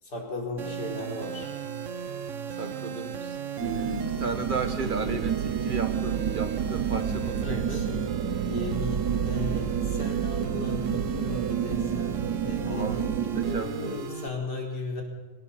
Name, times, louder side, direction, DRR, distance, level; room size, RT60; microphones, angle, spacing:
voice 1, 0.0-1.5 7.4-8.1 8.4-15.0, left 3 dB, 70° left, 0 dB, 4.7 m, -36 dB
sound 1, 0.6-14.3, right 7 dB, 50° right, 1.3 m, -37 dB
voice 2, 2.6-7.8 12.6-14.0, right 3 dB, 30° right, 8 dB, 1.6 m, -34 dB
sound 2, 3.6-13.6, right 8 dB, 70° right, 1.6 m, -29 dB
23.5 x 18.0 x 6.9 m, 1.3 s
omnidirectional pair, 1.9 m